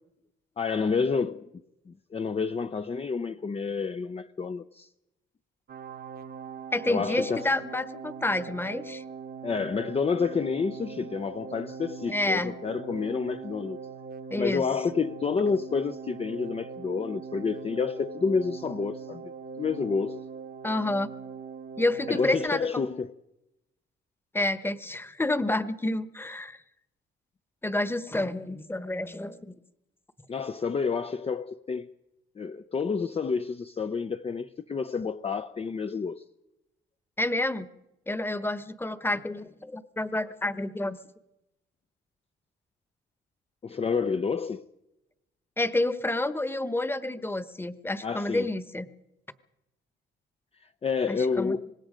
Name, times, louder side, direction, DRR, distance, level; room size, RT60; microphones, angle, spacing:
voice 1, 0.6-1.5 1.9-4.9 6.9-7.5 9.4-13.8 14.4-19.3 19.6-20.2 22.1-23.1 30.3-31.9 32.4-36.2 43.6-44.6 48.0-48.5 50.6-51.7, left 5 dB, 30° left, 0.7 m, -29 dB
sound 1, 5.7-22.5, right 5 dB, 50° right, 1.1 m, -41 dB
voice 2, 6.7-9.0 12.1-12.5 14.3-14.6 20.6-21.1 21.8-22.9 24.3-26.6 27.6-29.5 37.2-37.7 38.1-41.0 45.6-48.9 51.1-51.6, left 2 dB, 10° left, 1.2 m, -29 dB
25.5 x 20.0 x 5.1 m
cardioid pair, 90°, 20 cm